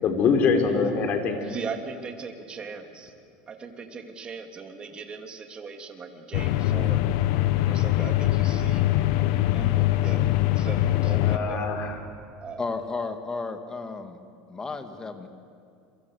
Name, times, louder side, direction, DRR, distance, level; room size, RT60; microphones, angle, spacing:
voice 1, 0.0-1.4 11.2-12.0, left 5 dB, 40° left, 5 dB, 4.1 m, -24 dB
voice 2, 1.4-3.1 3.5-7.0 7.6-8.9 9.5-11.6 12.4-12.7, right 5 dB, 25° right, 4 dB, 2.9 m, -39 dB
sound 1, 6.3-11.4, left 14 dB, 70° left, 1.1 m, -23 dB
voice 3, 12.6-14.2 14.5-15.3, left 4 dB, 15° left, 7 dB, 2.2 m, -33 dB
28.5 x 23.5 x 8.3 m, 2.4 s
supercardioid pair, 135°, 4 cm